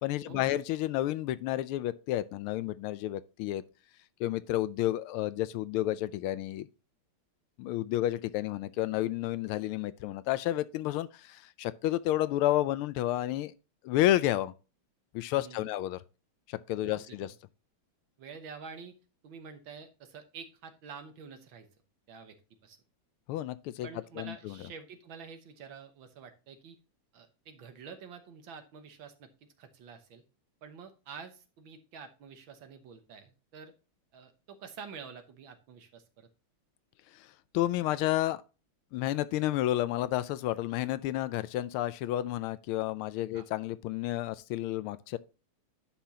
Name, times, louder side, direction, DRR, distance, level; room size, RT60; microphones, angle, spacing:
voice 1, 0.0-3.6 4.2-6.7 7.6-13.6 13.8-14.5 15.1-16.0 16.5-17.3 23.3-23.9 24.2-24.5 37.5-38.4 38.9-45.2, left 14 dB, 80° left, 1.4 m, -31 dB
voice 2, 15.3-15.7 16.8-17.3 18.2-18.9 19.2-21.7 22.1-22.4 22.6-22.8 23.8-26.8 27.1-29.3 29.6-30.2 30.6-33.7 34.1-36.3 43.3-43.5, right 6 dB, 70° right, 1.8 m, -48 dB
10.0 x 5.9 x 2.8 m
omnidirectional pair, 2.4 m